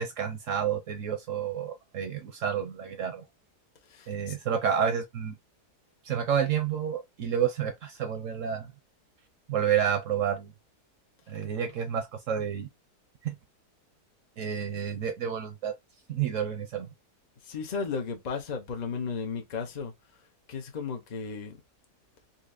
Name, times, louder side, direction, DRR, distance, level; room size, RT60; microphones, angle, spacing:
voice 1, 0.0-3.2 4.1-5.3 6.0-8.7 9.5-10.5 11.3-12.7 13.2-13.3 14.4-15.7 16.1-16.9, right 8 dB, 65° right, 0.8 m, -29 dB
voice 2, 3.9-4.4 17.4-19.9 20.5-21.6, left 5 dB, 50° left, 0.5 m, -34 dB
4.0 x 2.8 x 2.4 m
omnidirectional pair, 1.7 m